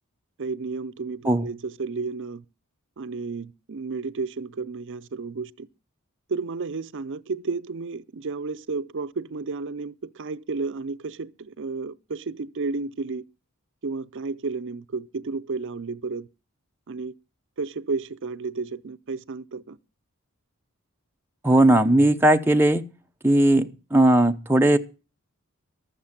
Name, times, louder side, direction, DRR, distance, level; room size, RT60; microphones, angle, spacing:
voice 1, 0.4-2.4 3.0-5.7 6.3-13.2 13.8-16.3 16.9-17.1 17.6-19.8, right 4 dB, 55° right, 0.6 m, -32 dB
voice 2, 21.4-22.9 23.2-24.8, right 1 dB, 10° right, 0.7 m, -18 dB
13.0 x 7.3 x 7.3 m
head